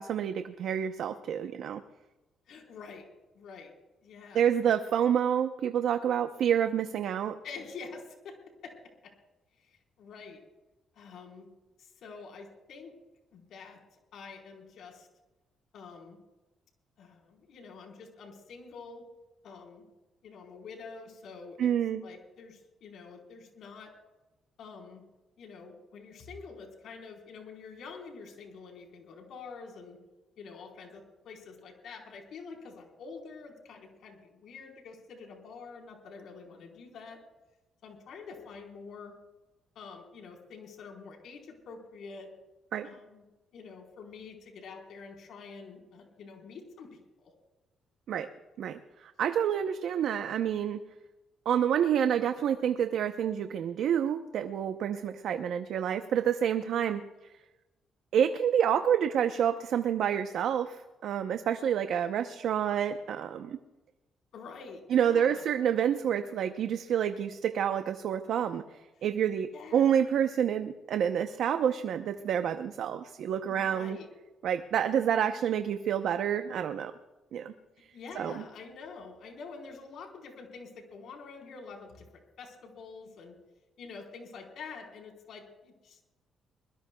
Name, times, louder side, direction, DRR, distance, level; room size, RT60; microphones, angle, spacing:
voice 1, 0.0-1.8 4.3-7.4 21.6-22.0 42.7-42.9 48.1-48.3 48.6-50.8 51.5-57.0 58.1-63.6 64.9-68.6 69.0-74.0 74.4-76.9 77.3-77.5 78.2-78.3, right 9 dB, 75° right, 8 dB, 0.7 m, -28 dB
voice 2, 2.5-3.0 3.3-3.7 4.0-4.4 7.4-8.4 8.6-8.7 9.6-10.4 10.9-11.5 11.8-12.9 13.3-15.1 15.7-16.2 17.0-19.0 19.4-19.9 20.2-21.7 22.0-23.9 24.6-25.0 25.4-30.0 30.4-37.2 37.8-39.1 39.7-42.3 42.8-43.2 43.5-47.3 64.3-65.4 69.0-69.1 69.5-70.0 73.5-74.1 74.9-75.4 77.9-83.4 83.8-86.1, left 5 dB, 70° left, 2 dB, 4.2 m, -47 dB
22.0 x 21.0 x 2.3 m, 1.1 s
cardioid pair, 90°, 0 cm